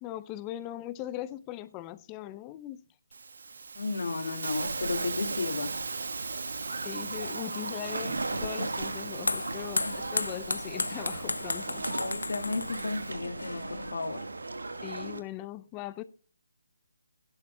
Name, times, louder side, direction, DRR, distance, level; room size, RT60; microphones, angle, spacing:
voice 1, 0.0-2.8 6.8-11.8 14.8-16.0, left 14 dB, 20° left, 0.5 m, -40 dB
Hiss, 3.1-13.1, right 4 dB, 65° right, 1.2 m, -40 dB
voice 2, 3.8-5.7 9.8-9.9 11.9-14.3, left 3 dB, 65° left, 2.1 m, -33 dB
sound 1, 4.6-15.2, right 3 dB, 80° right, 1.4 m, -37 dB
sound 2, 8.2-13.9, left 2 dB, 85° left, 0.6 m, -35 dB
18.0 x 11.5 x 2.2 m
figure-of-eight pair, 155°, 0 cm